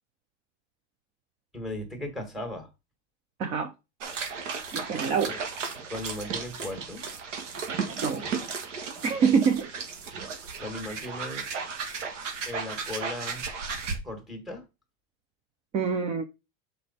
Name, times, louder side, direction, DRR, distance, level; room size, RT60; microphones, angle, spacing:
voice 1, 1.5-2.7 5.3-5.4 5.9-7.0 8.2-8.4 10.6-11.4 12.5-13.4 14.0-14.6, left 1 dB, ahead, 1.8 m, -37 dB
voice 2, 3.4-3.7 4.7-5.3 8.0-8.3 9.0-9.7 15.7-16.2, right 6 dB, 20° right, 0.3 m, -25 dB
sound 1, 4.0-14.0, right 5 dB, 85° right, 1.9 m, -35 dB
6.4 x 5.3 x 4.1 m
supercardioid pair, 155°, 36 cm